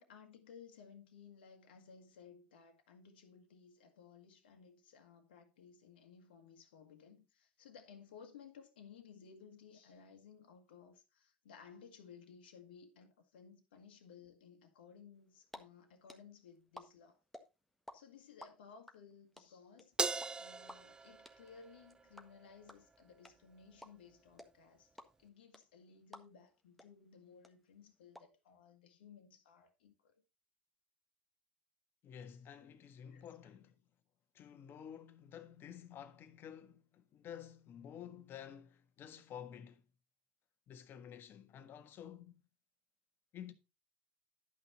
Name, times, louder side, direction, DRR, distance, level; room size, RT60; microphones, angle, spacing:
voice 1, 0.0-17.2 17.9-24.9 25.2-30.1 33.1-33.5, left 6 dB, 80° left, 1.6 m, -58 dB
sound 1, 15.2-15.6 15.8-17.9 18.2-26.5 26.8-26.9 27.1-28.2, left 1 dB, ahead, 1.5 m, -53 dB
Crash cymbal, 20.0-22.5, right 4 dB, 15° right, 0.4 m, -40 dB
voice 2, 32.0-33.7 34.3-39.8 40.7-42.4 43.3-43.5, left 9 dB, 45° left, 1.5 m, -51 dB
11.0 x 5.7 x 4.2 m
hypercardioid pair, 85°, 5 cm